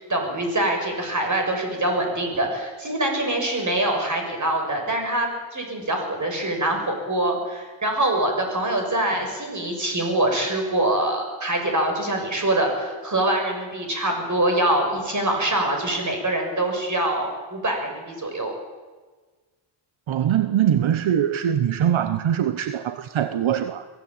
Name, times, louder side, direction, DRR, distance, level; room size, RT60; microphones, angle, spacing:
voice 1, 0.1-18.5, right 1 dB, 40° right, 3 dB, 6.9 m, -24 dB
voice 2, 20.1-23.9, right 10 dB, 75° right, 10 dB, 1.1 m, -22 dB
23.0 x 16.0 x 8.9 m, 1.4 s
cardioid pair, 90°, 47 cm